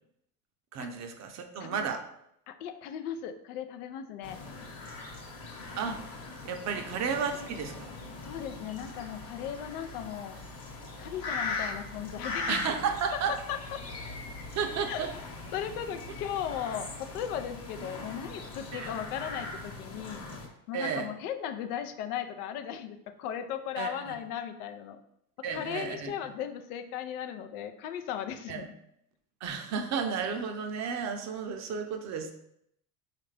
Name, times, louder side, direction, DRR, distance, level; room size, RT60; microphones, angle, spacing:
voice 1, 0.7-2.0 5.8-6.0 6.4-7.9 12.5-13.3 14.5-15.1 18.7-18.9 20.7-21.1 23.8-24.1 25.4-26.1 28.5-28.7 29.4-32.3, right 6 dB, 40° right, 5 dB, 0.5 m, -33 dB
voice 2, 2.5-4.4 6.7-6.8 8.2-10.4 11.0-12.6 13.5-13.6 14.8-15.0 15.5-20.3 20.7-25.0 25.5-28.8, left 9 dB, 85° left, 7 dB, 0.5 m, -37 dB
sound 1, 4.2-20.5, left 3 dB, 35° left, 1.0 m, -40 dB
3.7 x 2.4 x 3.2 m, 0.75 s
hypercardioid pair, 85°, 44 cm